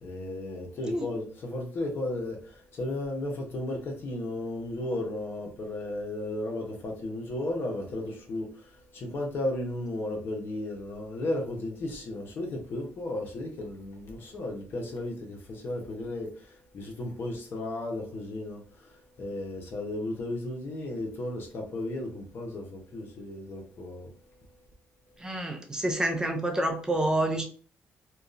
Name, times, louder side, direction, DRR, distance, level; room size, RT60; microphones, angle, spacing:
voice 1, 0.0-24.1, left 1 dB, 55° left, 0.9 m, -34 dB
voice 2, 25.2-27.4, right 1 dB, 15° right, 0.5 m, -28 dB
2.7 x 2.3 x 2.5 m
cardioid pair, 110°, 4 cm